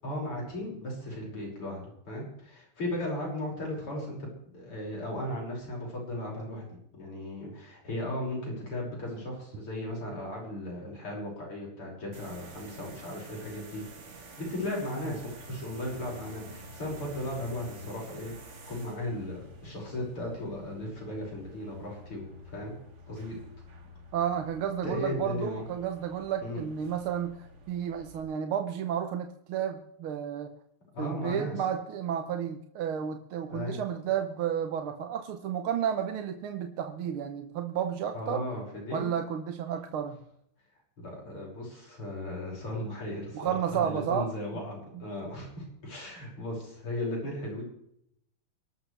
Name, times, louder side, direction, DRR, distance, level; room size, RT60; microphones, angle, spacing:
voice 1, 0.0-4.3 4.5-13.8 14.2-22.7 23.1-23.4 24.8-25.6 26.4-26.6 30.9-31.5 33.5-33.8 38.1-39.1 41.0-47.6, left 1 dB, 90° left, -2 dB, 6.8 m, -36 dB
sound 1, 12.1-28.2, equal, 35° right, 1.6 m, -50 dB
voice 2, 24.1-30.5 31.0-38.5 38.9-40.2 43.3-44.3, right 9 dB, 75° right, 6 dB, 1.8 m, -32 dB
24.0 x 12.5 x 3.4 m, 0.73 s
omnidirectional pair, 2.4 m